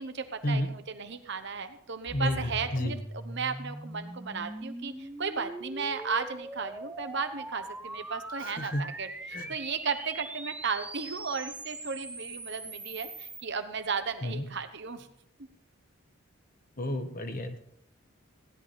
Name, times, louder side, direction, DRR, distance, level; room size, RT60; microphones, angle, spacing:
voice 1, 0.0-15.1, right 5 dB, 55° right, 9 dB, 0.9 m, -35 dB
voice 2, 2.1-2.9 8.4-8.9 9.3-9.5 14.2-14.5 16.8-17.6, left 1 dB, 40° left, 7 dB, 1.2 m, -31 dB
sound 1, 2.1-13.4, right 1 dB, 5° right, 0.5 m, -42 dB
16.5 x 10.5 x 4.2 m, 0.72 s
head